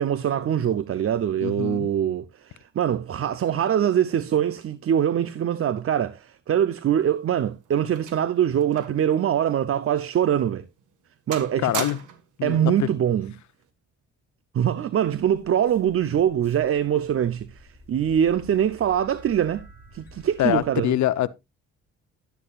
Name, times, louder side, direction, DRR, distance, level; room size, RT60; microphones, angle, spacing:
voice 1, 0.0-10.6 11.3-11.9 12.4-13.3 14.5-19.7 19.9-20.9, right 9 dB, 45° right, 0.7 m, -23 dB
voice 2, 1.4-1.9 11.6-12.0 12.4-12.9 20.4-21.3, left 13 dB, 70° left, 0.8 m, -24 dB
sound 1, 7.0-9.1 9.4-9.6 10.2-10.4 10.8-11.1 11.3-12.4 13.4-13.6, right 8 dB, 80° right, 1.7 m, -37 dB
sound 2, 15.0-20.7, right 1 dB, 10° right, 7.2 m, -50 dB
12.5 x 9.8 x 2.4 m
cardioid pair, 90°, 30 cm